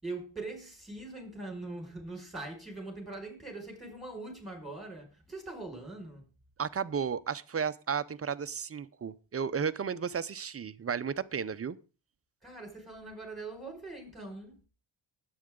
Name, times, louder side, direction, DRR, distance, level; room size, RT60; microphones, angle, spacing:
voice 1, 0.0-6.3 12.4-14.7, right 2 dB, ahead, 5.2 m, -42 dB
voice 2, 6.6-11.8, right 6 dB, 30° right, 0.6 m, -33 dB
20.0 x 8.7 x 3.8 m
cardioid pair, 125°, 47 cm